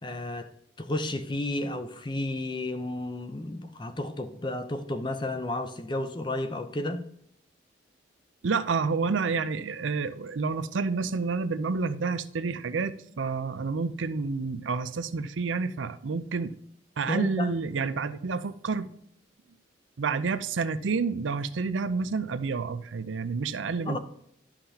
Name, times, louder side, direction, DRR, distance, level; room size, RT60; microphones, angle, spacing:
voice 1, 0.0-0.5 0.8-7.0 17.1-17.5 23.8-24.0, left 1 dB, 25° left, 0.6 m, -32 dB
voice 2, 8.4-16.5 17.0-18.9 20.0-24.0, right 4 dB, 90° right, 0.5 m, -29 dB
11.5 x 5.7 x 2.8 m
head